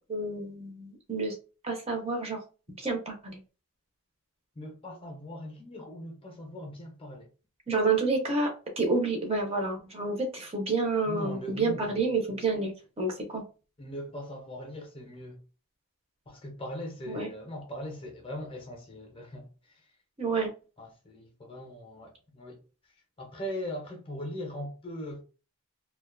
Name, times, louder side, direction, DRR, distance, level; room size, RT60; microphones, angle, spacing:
voice 1, 0.1-1.3 1.6-2.4 2.8-3.4 7.7-12.7 13.0-13.4 17.1-17.3 20.2-20.5, right 3 dB, 25° right, 0.5 m, -29 dB
voice 2, 4.6-7.3 11.1-11.9 13.8-15.4 16.3-19.9 20.8-22.6 23.2-25.2, equal, 25° left, 0.5 m, -40 dB
2.4 x 2.2 x 2.4 m
head